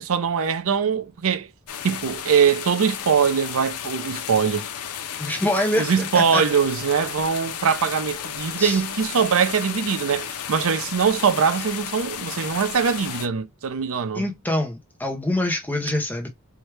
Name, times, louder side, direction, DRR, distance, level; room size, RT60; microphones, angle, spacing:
voice 1, 0.0-1.5 1.8-4.7 5.8-14.2, right 6 dB, 65° right, 0.5 m, -22 dB
sound 1, 1.7-13.3, left 9 dB, 75° left, 0.6 m, -33 dB
voice 2, 5.2-6.4 8.6-8.8 14.1-16.3, left 1 dB, 10° left, 0.6 m, -25 dB
4.5 x 2.3 x 3.2 m
head